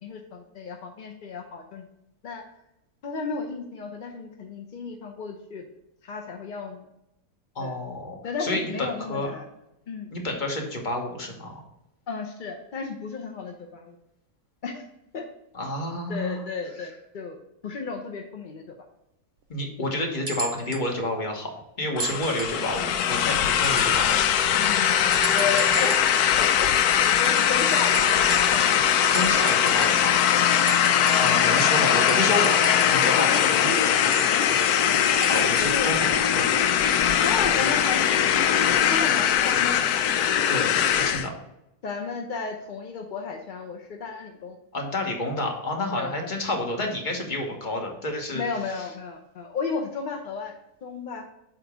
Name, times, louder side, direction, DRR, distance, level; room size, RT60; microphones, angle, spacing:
voice 1, 0.0-1.8 2.2-2.4 3.0-5.7 6.0-6.8 7.6-7.8 8.2-9.5 9.9-10.1 12.1-14.0 14.6-14.8 15.1-15.2 16.1-17.4 17.6-18.6 24.6-28.7 30.6-30.7 31.5-31.6 33.2-35.1 35.6-35.9 37.2-38.5 38.9-40.0 41.8-44.6 46.0-46.1 48.3-50.5 50.8-51.2, left 4 dB, 50° left, 3 dB, 0.6 m, -33 dB
voice 2, 7.5-9.3 10.1-11.6 15.5-16.4 19.5-24.3 29.1-30.2 31.1-33.3 35.3-36.5 40.5-41.3 44.7-48.4 48.8-48.9, left 1 dB, 35° left, 1 dB, 1.2 m, -29 dB
sound 1, 20.3-20.9 22.0-22.7 23.6-24.2 25.1-26.2 27.2-28.8 29.0-30.1 30.5-33.1 34.1-35.8 37.1-37.4 38.3-38.4, right 5 dB, 70° right, 0.5 m, -36 dB
sound 2, 22.0-41.3, left 9 dB, 85° left, 1.1 m, -21 dB
7.9 x 3.0 x 5.0 m, 0.86 s
omnidirectional pair, 1.6 m